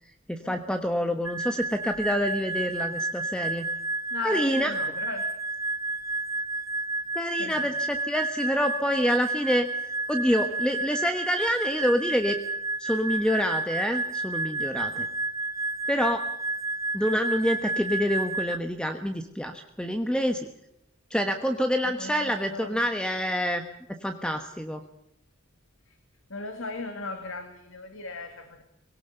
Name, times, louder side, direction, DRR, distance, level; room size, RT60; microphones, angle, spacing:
voice 1, 0.3-3.6 4.2-4.7 7.1-12.4 12.8-15.1 15.9-16.3 16.9-20.4 21.1-23.6 24.0-24.8, equal, 5° left, 7 dB, 1.2 m, -27 dB
sound 1, 1.2-18.6, right 2 dB, 15° right, 1.2 m, -31 dB
voice 2, 4.1-5.3 7.4-7.7 22.0-22.8 26.3-28.6, left 3 dB, 85° left, 7 dB, 2.5 m, -37 dB
22.0 x 18.0 x 6.7 m, 0.80 s
head